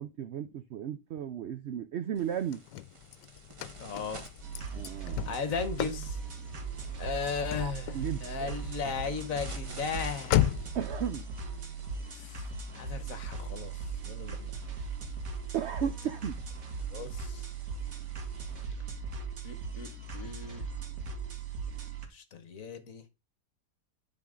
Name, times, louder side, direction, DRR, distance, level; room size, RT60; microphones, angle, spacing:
voice 1, 0.0-2.6 4.7-5.3 7.6-8.5 10.7-11.2 15.5-16.4, right 9 dB, 90° right, 0.5 m, -35 dB
sound 1, 2.1-18.7, right 2 dB, 25° right, 0.9 m, -53 dB
Car / Slam, 2.2-10.9, left 13 dB, 85° left, 1.2 m, -36 dB
voice 2, 3.8-4.2 5.2-6.2 7.0-10.5 12.1-12.4 12.7-14.5 16.9-17.4 19.4-20.7 22.1-23.0, left 5 dB, 55° left, 1.4 m, -36 dB
sound 2, 4.4-22.1, right 4 dB, 55° right, 1.8 m, -39 dB
11.5 x 4.1 x 3.7 m
omnidirectional pair, 1.8 m